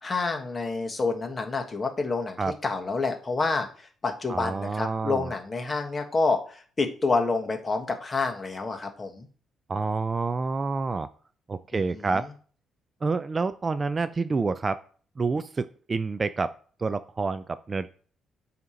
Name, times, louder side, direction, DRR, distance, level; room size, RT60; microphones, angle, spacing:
voice 1, 0.0-9.3 11.7-12.2, left 3 dB, 30° left, 4 dB, 1.3 m, -28 dB
voice 2, 4.3-5.3 9.7-11.1 11.5-12.3 13.0-14.8 15.2-16.5 16.8-17.9, right 4 dB, 30° right, 13 dB, 0.3 m, -28 dB
7.8 x 2.9 x 5.0 m, 0.43 s
cardioid pair, 90°, 0 cm